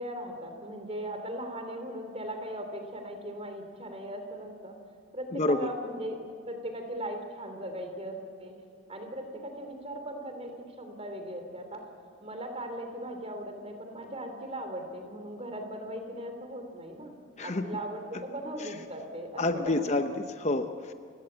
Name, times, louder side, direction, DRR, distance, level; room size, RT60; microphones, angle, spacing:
voice 1, 0.0-4.8 5.1-6.2 6.4-8.5 8.9-11.8 12.2-17.1 17.4-19.8, right 1 dB, 30° right, 5 dB, 3.1 m, -38 dB
voice 2, 5.3-5.7 17.4-17.8 18.6-18.7 19.4-20.9, left 2 dB, 30° left, 7 dB, 0.8 m, -29 dB
29.5 x 16.5 x 8.8 m, 2.2 s
head